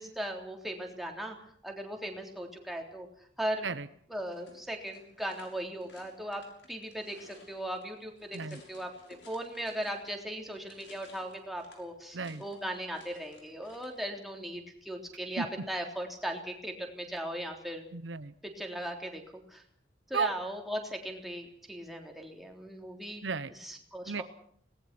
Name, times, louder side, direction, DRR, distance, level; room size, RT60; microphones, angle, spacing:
voice 1, 0.0-1.4 1.6-3.1 3.4-3.7 4.1-6.4 6.7-8.4 8.7-8.9 9.3-17.9 18.4-19.2 19.5-19.6 20.1-23.2 23.6-24.2, right 1 dB, ahead, 1 dB, 3.4 m, -38 dB
sound 1, 4.3-10.2 10.5-14.0, left 3 dB, 70° left, 6.6 m, -58 dB
voice 2, 15.4-15.7 17.9-18.3 20.1-20.3 23.2-23.5 24.1-24.2, right 5 dB, 75° right, 13 dB, 0.9 m, -34 dB
26.0 x 19.5 x 6.1 m, 0.63 s
head